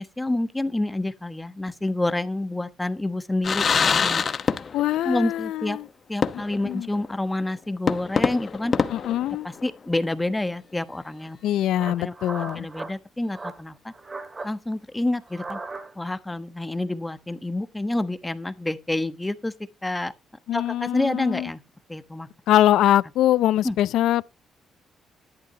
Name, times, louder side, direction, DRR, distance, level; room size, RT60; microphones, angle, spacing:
voice 1, 0.0-4.2 5.0-5.8 6.1-8.7 9.4-11.4 11.8-12.1 12.5-13.9 14.4-15.6 16.0-19.5 19.8-20.1 20.5-21.6 21.9-22.3 23.6-23.7, left 2 dB, 10° left, 1.1 m, -28 dB
sound 1, 3.4-5.0 5.3-5.4 6.2-6.7 7.1-7.2 7.9-9.9, left 6 dB, 45° left, 1.1 m, -25 dB
voice 2, 4.7-5.9 6.3-6.9 8.9-9.5 11.4-12.7 20.5-21.5 22.5-24.2, left 13 dB, 85° left, 0.5 m, -23 dB
sound 2, 11.2-11.3 11.7-12.9 13.3-13.6 13.9-14.5 15.2-16.1, right 3 dB, 25° right, 2.1 m, -37 dB
13.5 x 11.5 x 2.9 m
cardioid pair, 90°, 0 cm